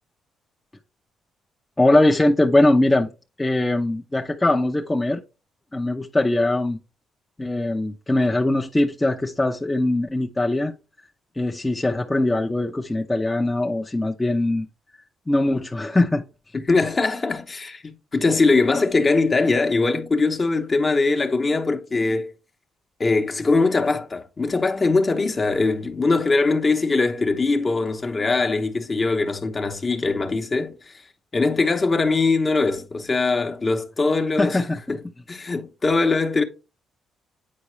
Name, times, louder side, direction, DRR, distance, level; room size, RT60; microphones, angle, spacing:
voice 1, 1.8-3.1 3.4-5.2 5.7-6.8 7.4-10.7 11.4-14.7 15.3-16.2 34.4-34.8, left 2 dB, 15° left, 0.7 m, -21 dB
voice 2, 16.5-22.3 23.0-30.9 31.3-34.6 34.9-35.0 35.3-36.4, left 3 dB, 35° left, 0.9 m, -21 dB
8.5 x 4.5 x 3.1 m
supercardioid pair, 65°, 0 cm